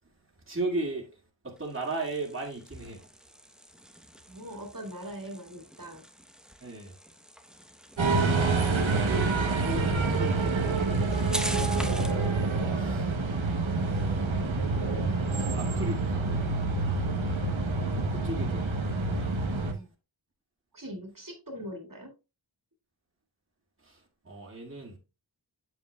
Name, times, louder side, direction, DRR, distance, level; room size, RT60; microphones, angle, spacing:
voice 1, 0.5-3.1 6.6-6.9 9.6-10.9 11.7-12.0 12.7-13.2 13.8-14.3 15.5-16.3 18.1-18.8 19.1-19.6 23.8-25.0, right 2 dB, 25° right, 2.1 m, -37 dB
sound 1, 1.6-12.3, equal, ahead, 0.9 m, -43 dB
voice 2, 4.3-6.0 11.4-11.7 19.5-19.9 20.7-22.1, equal, 45° right, 2.2 m, -41 dB
sound 2, 8.0-19.7, right 3 dB, 90° right, 1.1 m, -27 dB
7.9 x 7.7 x 2.3 m
wide cardioid pair, 40°, 45 cm